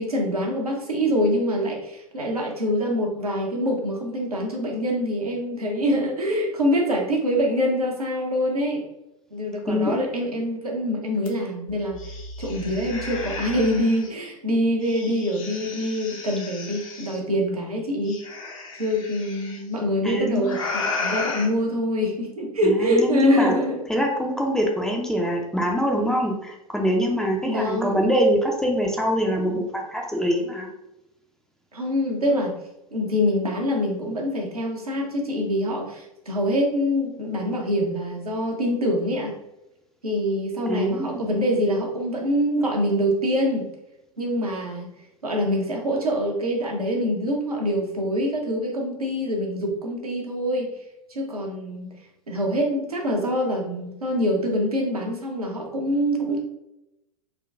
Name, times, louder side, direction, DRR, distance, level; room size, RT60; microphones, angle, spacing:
voice 1, 0.0-8.8 9.3-12.0 12.4-18.2 18.7-23.9 27.4-28.0 31.7-32.6 32.9-39.3 40.0-43.7 44.2-44.9 45.2-50.7 51.1-51.9 52.3-56.4, equal, 85° right, -1 dB, 1.0 m, -25 dB
sound 1, 11.3-11.4 11.7-14.1 14.8-17.2 18.1-19.6 20.4-21.5, left 3 dB, 65° left, 0.9 m, -33 dB
voice 2, 20.0-20.6 22.6-23.5 23.9-30.7 40.7-41.4, equal, 5° left, 0 dB, 0.5 m, -24 dB
3.9 x 2.3 x 3.5 m, 0.88 s
figure-of-eight pair, 100°, 19 cm